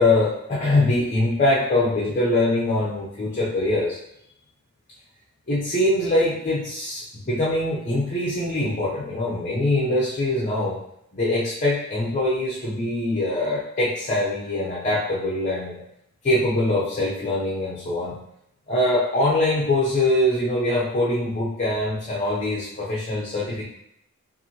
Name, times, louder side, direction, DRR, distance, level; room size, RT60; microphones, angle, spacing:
voice 1, 0.0-4.0 5.5-10.8 11.1-15.8 16.2-18.2 18.7-23.6, left 1 dB, 35° left, -5 dB, 0.7 m, -23 dB
5.5 x 2.7 x 2.9 m, 0.77 s
head